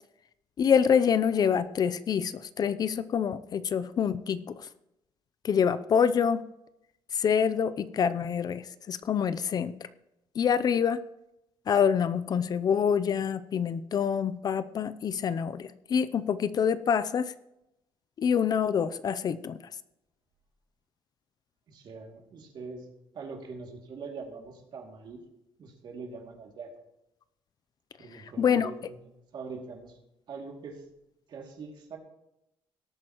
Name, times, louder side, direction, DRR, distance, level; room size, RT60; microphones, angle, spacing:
voice 1, 0.6-4.7 5.4-6.4 7.1-9.7 10.3-11.0 11.7-17.3 18.2-19.6 28.1-28.7, left 7 dB, 45° left, 14 dB, 0.5 m, -26 dB
voice 2, 21.7-22.9 23.1-25.2 25.6-26.7 28.0-30.0 30.3-30.8 31.3-32.0, right 4 dB, 55° right, 1 dB, 2.5 m, -43 dB
18.0 x 8.9 x 3.0 m, 0.85 s
cardioid pair, 130°, 10 cm